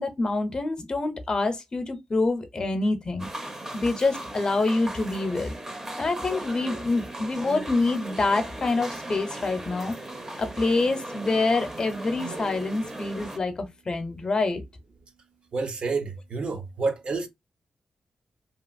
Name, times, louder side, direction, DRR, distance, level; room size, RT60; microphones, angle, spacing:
voice 1, 0.0-3.3 3.7-5.5 6.0-9.9 10.4-14.6, left 3 dB, 40° left, 0.6 m, -26 dB
sound 1, 3.2-13.4, right 1 dB, 20° right, 0.6 m, -37 dB
voice 2, 15.5-17.3, right 4 dB, 55° right, 0.6 m, -29 dB
2.8 x 2.5 x 2.5 m
cardioid pair, 95°, 2 cm